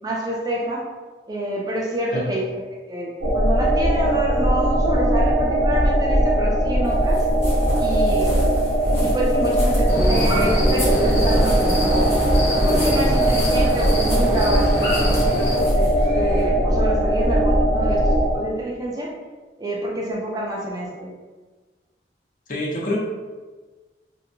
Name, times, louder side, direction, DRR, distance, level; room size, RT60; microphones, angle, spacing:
voice 1, 0.0-0.9 1.3-7.3 7.8-8.4 9.0-12.2 12.6-19.1 19.6-21.1, right 1 dB, 20° right, -3 dB, 0.4 m, -27 dB
sound 1, 3.2-18.4, right 1 dB, 60° right, 0.7 m, -19 dB
sound 2, 6.8-16.7, left 1 dB, 15° left, 0.7 m, -37 dB
sound 3, 9.9-15.6, equal, 80° left, 0.9 m, -25 dB
voice 2, 22.5-23.0, left 1 dB, 50° left, -4 dB, 0.6 m, -25 dB
2.7 x 2.1 x 2.5 m, 1.3 s
head